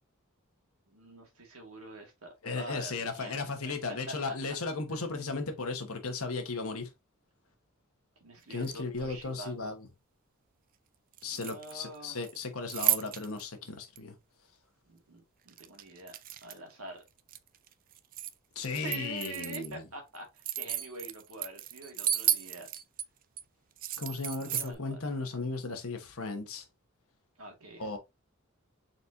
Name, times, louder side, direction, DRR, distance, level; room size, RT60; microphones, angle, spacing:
voice 1, 0.9-4.4 4.9-5.0 8.2-9.7 11.2-12.2 14.9-16.2 16.4-17.0 18.6-22.7 24.4-25.0 27.4-28.0, right 2 dB, 75° right, 1.9 m, -46 dB
voice 2, 2.4-6.9 8.5-9.9 11.2-14.1 18.5-19.8 24.0-26.6 27.8-28.0, left 3 dB, 75° left, 1.2 m, -36 dB
sound 1, 8.5-9.2 11.1-12.0 12.2-13.4 14.0-14.1 15.5-16.7 17.1-18.3 18.6-19.7 20.1-23.0 23.4-23.5 23.8-24.7, right 12 dB, 40° right, 0.4 m, -33 dB
4.2 x 4.1 x 2.6 m
head